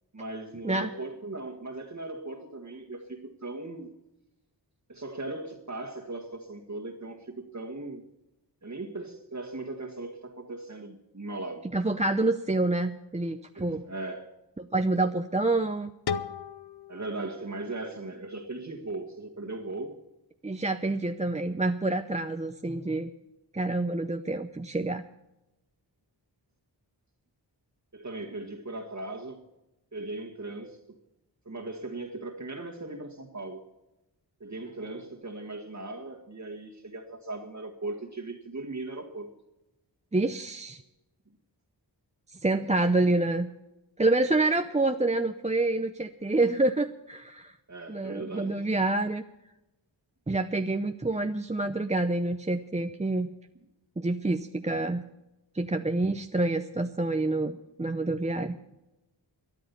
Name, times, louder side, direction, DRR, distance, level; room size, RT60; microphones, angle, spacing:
voice 1, 0.1-3.9 4.9-8.0 8.6-11.7 13.5-14.3 16.9-20.0 27.9-29.4 29.9-30.8 31.5-33.7 34.4-39.3 47.7-48.6, right 2 dB, 40° right, 0 dB, 1.7 m, -38 dB
voice 2, 11.7-13.9 14.6-15.9 20.4-23.1 23.5-25.0 40.1-40.8 42.3-43.5 44.0-47.6 47.9-49.2 50.3-53.3 54.0-55.0 55.5-58.6, right 2 dB, 15° right, 7 dB, 0.7 m, -27 dB
sound 1, 16.1-18.9, left 7 dB, 60° left, 0.8 m, -38 dB
13.5 x 11.0 x 7.0 m, 0.96 s
cardioid pair, 50°, 44 cm